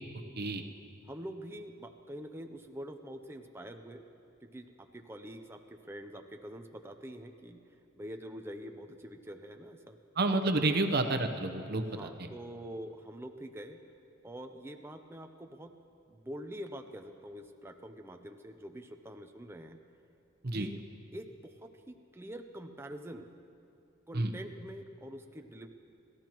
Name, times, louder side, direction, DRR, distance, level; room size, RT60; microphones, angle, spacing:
voice 1, 1.1-4.0 4.4-7.6 7.9-10.0 10.6-10.8 11.9-13.8 14.2-15.7 16.1-19.8 20.5-20.8 21.1-23.3 24.1-25.7, equal, 10° right, 5 dB, 0.5 m, -45 dB
voice 2, 10.2-12.3 20.4-20.7 24.1-24.3, right 2 dB, 50° right, 7 dB, 0.8 m, -30 dB
29.0 x 13.0 x 3.0 m, 2.5 s
head